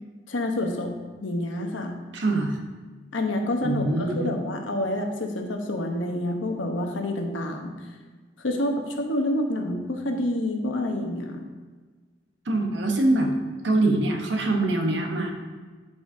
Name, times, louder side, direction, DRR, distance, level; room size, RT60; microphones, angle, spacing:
voice 1, 0.3-0.9 1.2-2.0 3.1-7.7 8.4-11.4, left 1 dB, 75° left, 3 dB, 1.0 m, -28 dB
voice 2, 2.1-2.6 3.6-4.3 12.5-13.3 13.6-15.3, right 2 dB, 65° right, 2 dB, 1.1 m, -24 dB
12.0 x 5.0 x 2.7 m, 1.4 s
head